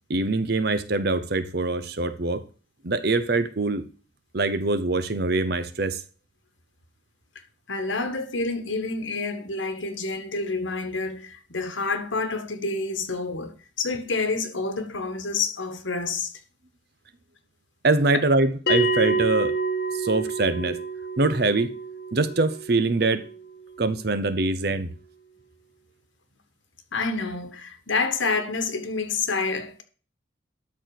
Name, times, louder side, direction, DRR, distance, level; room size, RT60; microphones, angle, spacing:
voice 1, 0.1-2.4 2.8-3.8 4.3-6.0 17.8-19.6 19.9-20.8 21.2-21.7 22.1-23.3 23.8-24.9, right 2 dB, 55° right, 0.9 m, -23 dB
voice 2, 7.7-16.3 26.9-29.8, left 3 dB, 80° left, 1.7 m, -28 dB
Bell, 18.7-23.7, right 3 dB, 55° left, 1.2 m, -28 dB
12.5 x 4.2 x 6.5 m
head